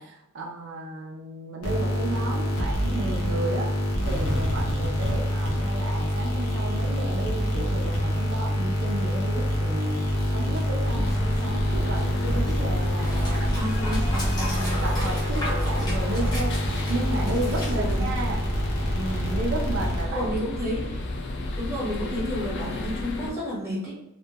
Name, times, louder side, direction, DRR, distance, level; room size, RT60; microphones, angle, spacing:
voice 1, 0.0-3.7 4.0-10.0 10.3-13.5 14.1-16.5 16.9-18.5 18.9-20.3, right 2 dB, 55° right, 0 dB, 0.4 m, -33 dB
sound 1, 1.6-20.4, equal, 80° left, 0.7 m, -27 dB
Dog, 9.2-19.1, equal, 20° left, 0.6 m, -34 dB
sound 2, 10.8-23.3, left 1 dB, 50° left, 0.3 m, -32 dB
voice 2, 13.5-14.1 17.7-18.0 20.1-21.0 21.6-23.9, left 1 dB, 10° right, -8 dB, 1.1 m, -31 dB
2.7 x 2.1 x 2.2 m, 0.84 s
head